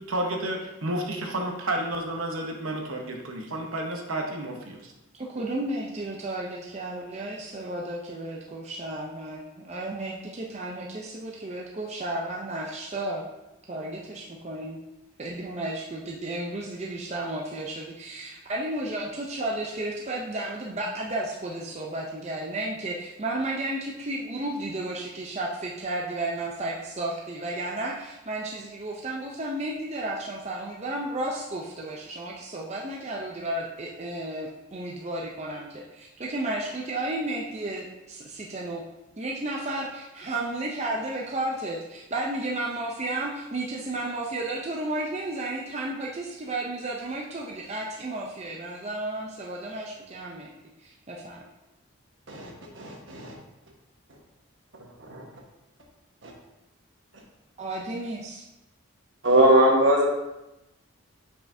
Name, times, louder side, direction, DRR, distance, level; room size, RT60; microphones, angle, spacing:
voice 1, 0.1-4.9, right 1 dB, 80° right, 2 dB, 0.9 m, -31 dB
voice 2, 5.1-13.2 13.7-14.8 15.2-38.8 39.2-50.5 50.8-51.4 57.6-58.4, right 2 dB, 30° right, -2 dB, 0.5 m, -33 dB
voice 3, 52.8-53.3 56.2-56.3 59.2-60.1, right 1 dB, 60° right, 0 dB, 1.2 m, -20 dB
7.3 x 5.7 x 2.7 m, 0.94 s
head